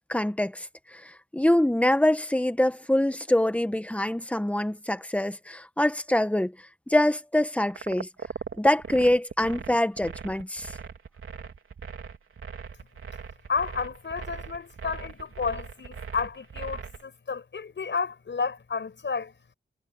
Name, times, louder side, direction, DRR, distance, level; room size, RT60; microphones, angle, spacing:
voice 1, 0.1-6.5 6.9-8.1 8.6-10.7, left 1 dB, 5° left, 1.4 m, -25 dB
sound 1, 7.7-17.0, right 6 dB, 80° right, 3.6 m, -39 dB
voice 2, 13.5-19.3, left 5 dB, 65° left, 5.6 m, -31 dB
wide cardioid pair, 100°, 21 cm